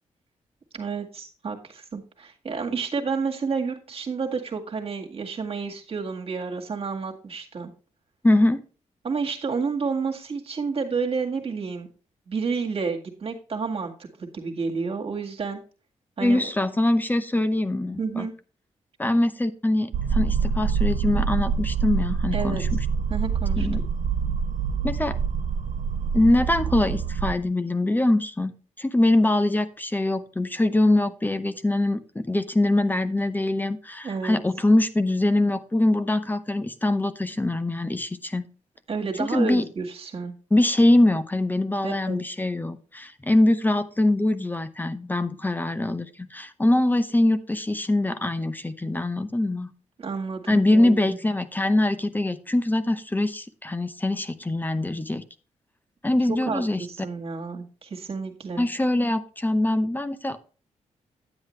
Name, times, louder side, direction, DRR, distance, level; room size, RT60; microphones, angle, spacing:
voice 1, 0.7-7.7 9.0-11.9 12.3-13.9 14.2-15.6 16.2-16.4 18.0-18.3 22.3-22.6 23.1-23.7 34.0-34.4 38.9-40.3 41.8-42.2 50.0-51.2 56.5-58.7, right 5 dB, 50° right, 1 dB, 2.0 m, -30 dB
voice 2, 8.2-8.6 16.2-18.3 19.0-22.8 23.6-23.8 24.8-25.2 26.1-38.5 39.2-39.7 40.5-49.7 50.5-55.2 56.0-56.9 58.6-60.4, left 1 dB, 15° left, 12 dB, 0.7 m, -23 dB
sound 1, 19.9-27.3, right 6 dB, 75° right, 0.7 m, -26 dB
9.8 x 8.0 x 3.2 m, 0.38 s
cardioid pair, 75°, 13 cm